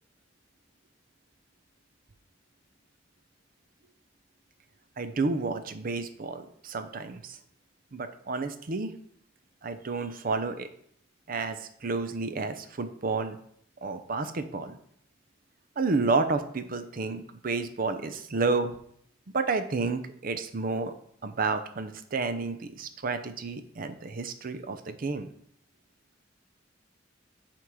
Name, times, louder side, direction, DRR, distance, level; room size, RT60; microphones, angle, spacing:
voice 1, 5.0-7.4 7.9-8.9 9.6-10.7 11.3-13.4 13.8-14.8 15.8-18.7 19.3-20.9 21.2-25.3, right 3 dB, 50° right, 10 dB, 0.6 m, -30 dB
5.9 x 4.6 x 4.8 m, 0.65 s
head